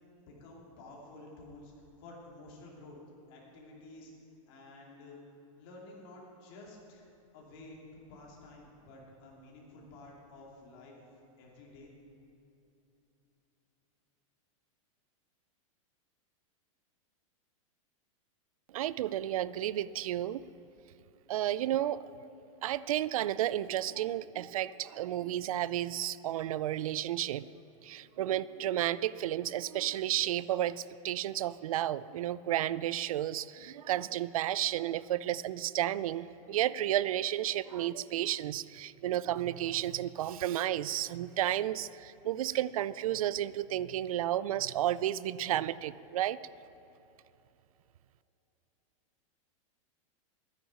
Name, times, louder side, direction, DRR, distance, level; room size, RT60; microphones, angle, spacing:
voice 1, 0.3-3.0 3.3-4.1 4.5-5.2 5.5-7.0 7.3-11.0 11.4-11.9, left 2 dB, 40° left, -3 dB, 2.8 m, -51 dB
voice 2, 18.7-20.4 21.3-22.0 22.6-27.5 27.8-46.4, right 12 dB, 85° right, 18 dB, 0.4 m, -32 dB
12.5 x 9.7 x 5.4 m, 2.9 s
supercardioid pair, 165°, 18 cm